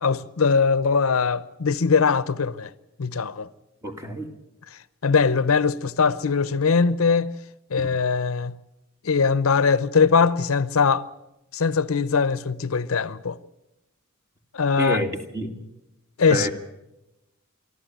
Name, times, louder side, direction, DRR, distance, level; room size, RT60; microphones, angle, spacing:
voice 1, 0.0-2.7 3.0-3.5 5.0-7.3 7.7-8.5 9.0-11.1 11.5-13.4 14.5-15.0 16.2-16.5, left 5 dB, 90° left, 0.7 m, -21 dB
voice 2, 3.8-4.3 7.8-7.9 14.8-15.6 16.3-16.5, right 1 dB, 15° right, 2.0 m, -28 dB
24.5 x 14.0 x 9.0 m
head